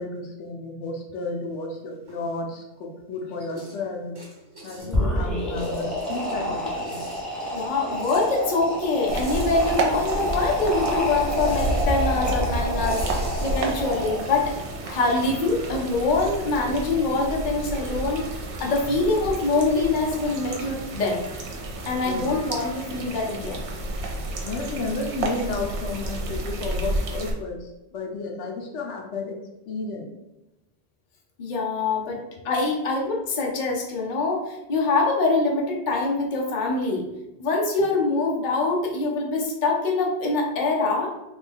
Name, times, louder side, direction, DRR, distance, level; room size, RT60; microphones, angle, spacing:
voice 1, 0.0-4.2 4.6-7.0 12.4-12.5 12.8-13.2 22.0-22.3 24.4-29.4 29.7-30.1 31.9-32.4, left 3 dB, 80° left, 1 dB, 0.9 m, -32 dB
sound 1, 1.1-2.7 3.1-10.3 10.6-15.3, right 1 dB, 20° right, 1.1 m, -43 dB
sound 2, 4.8-14.5, equal, ahead, 0.7 m, -29 dB
voice 2, 7.5-14.6 14.8-21.2 21.9-23.6 31.4-37.0 37.4-41.1, left 3 dB, 45° left, -1 dB, 0.7 m, -24 dB
sound 3, 9.1-27.3, right 2 dB, 70° right, 0.9 m, -31 dB
3.4 x 2.3 x 3.5 m, 0.96 s
omnidirectional pair, 1.2 m